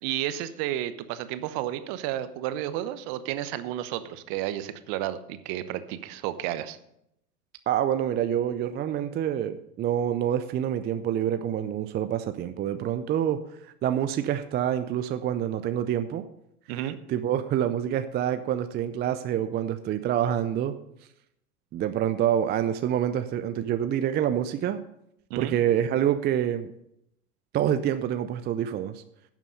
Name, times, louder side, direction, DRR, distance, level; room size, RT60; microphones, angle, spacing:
voice 1, 0.0-6.8 16.7-17.0 25.3-25.6, right 12 dB, 50° right, 13 dB, 1.0 m, -32 dB
voice 2, 7.7-13.4 13.8-16.2 17.1-20.8 21.7-24.8 25.4-26.7 27.5-29.0, right 10 dB, 25° right, 10 dB, 0.4 m, -27 dB
11.0 x 7.3 x 5.3 m, 0.78 s
hypercardioid pair, 90°, 47 cm